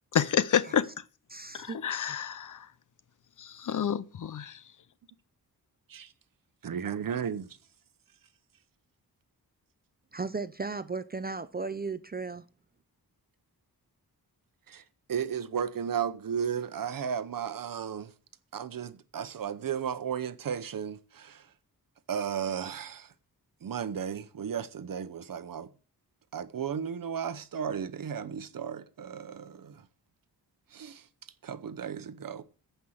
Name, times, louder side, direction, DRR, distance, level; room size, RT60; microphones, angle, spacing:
voice 1, 0.1-0.9 1.5-2.7 3.4-4.6, left 8 dB, 55° left, 0.6 m, -29 dB
voice 2, 1.3-1.8 10.1-12.5, right 4 dB, 25° right, 0.4 m, -35 dB
voice 3, 6.6-7.6 14.7-14.8 15.1-18.1 18.5-21.5 22.1-23.1 23.6-25.7 26.3-29.9 30.7-31.1 31.4-32.4, right 8 dB, 60° right, 0.9 m, -34 dB
14.5 x 5.6 x 6.4 m
wide cardioid pair, 180°, 38 cm